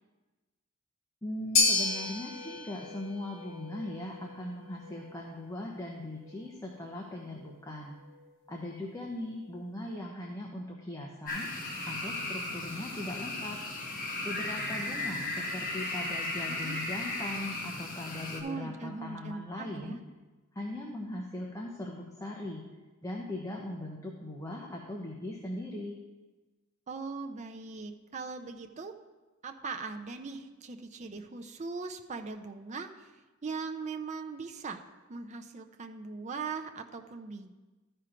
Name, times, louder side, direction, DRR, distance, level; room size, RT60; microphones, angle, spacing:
voice 1, 1.2-8.0 8.5-11.5 11.9-13.6 14.2-20.0 20.5-22.6 23.0-26.0, left 1 dB, 15° left, -1 dB, 0.8 m, -39 dB
sound 1, 1.6-9.9, left 3 dB, 80° left, 1.5 m, -35 dB
Frogs at Raccoon Lake, 11.3-18.4, left 2 dB, 40° left, 1.4 m, -36 dB
voice 2, 16.5-16.8 18.4-20.0 26.9-28.9 29.4-33.1 33.4-34.8 35.1-37.5, right 4 dB, 35° right, 5 dB, 0.5 m, -40 dB
13.0 x 4.4 x 5.0 m, 1.2 s
head